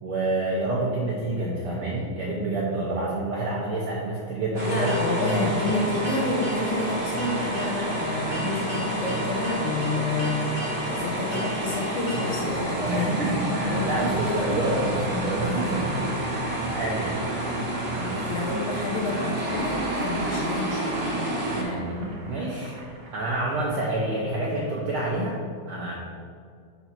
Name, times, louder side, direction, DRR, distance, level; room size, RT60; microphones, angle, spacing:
voice 1, 0.0-4.9 5.1-5.5 12.6-17.6 17.9-18.3 21.5-22.8 23.1-25.4 25.7-26.0, right 2 dB, 80° right, -4 dB, 1.2 m, -28 dB
sound 1, 4.5-21.6, right 1 dB, 30° right, 1.0 m, -29 dB
voice 2, 4.6-10.4 10.9-14.6 18.3-21.0, left 2 dB, 80° left, -3 dB, 1.1 m, -29 dB
Boiling, 13.5-24.2, right 2 dB, 55° right, 1.3 m, -43 dB
5.3 x 4.6 x 5.8 m, 2.2 s
omnidirectional pair, 3.5 m